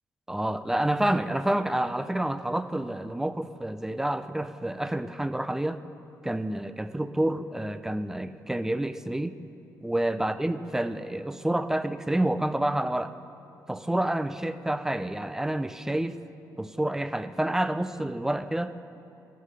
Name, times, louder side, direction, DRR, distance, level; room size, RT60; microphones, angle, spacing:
voice 1, 0.3-5.8 6.2-9.4 9.8-13.1 13.7-16.2 16.6-18.7, right 1 dB, 5° right, 12 dB, 0.3 m, -28 dB
14.0 x 5.6 x 4.9 m, 2.7 s
cardioid pair, 90°, 7 cm